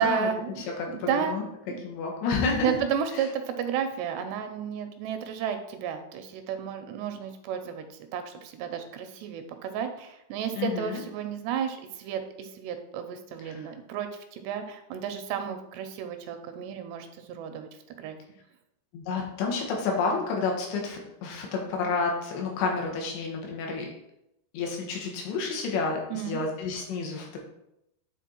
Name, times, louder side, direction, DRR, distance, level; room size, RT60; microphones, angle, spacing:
voice 1, 0.0-1.4 1.7-1.8 2.6-7.9 8.1-18.2 26.1-26.4, right 8 dB, 85° right, 7 dB, 2.6 m, -32 dB
voice 2, 0.8-1.4 1.8-2.8 10.5-11.0 13.5-13.6 18.9-23.9 24.5-27.4, left 4 dB, 80° left, 0 dB, 3.6 m, -30 dB
10.0 x 4.0 x 4.5 m, 0.82 s
omnidirectional pair, 5.0 m